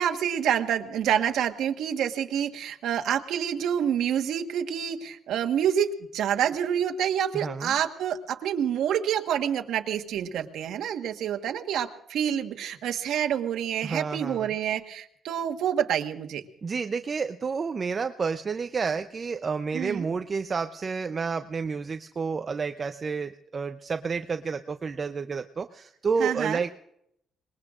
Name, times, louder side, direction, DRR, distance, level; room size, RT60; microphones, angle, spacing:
voice 1, 0.0-16.4 19.7-20.1 26.2-26.6, right 9 dB, 75° right, 5 dB, 1.3 m, -27 dB
voice 2, 7.3-7.7 13.8-14.5 16.6-26.7, right 5 dB, 35° right, 8 dB, 0.6 m, -30 dB
26.0 x 21.0 x 2.5 m, 0.75 s
cardioid pair, 120°, 0 cm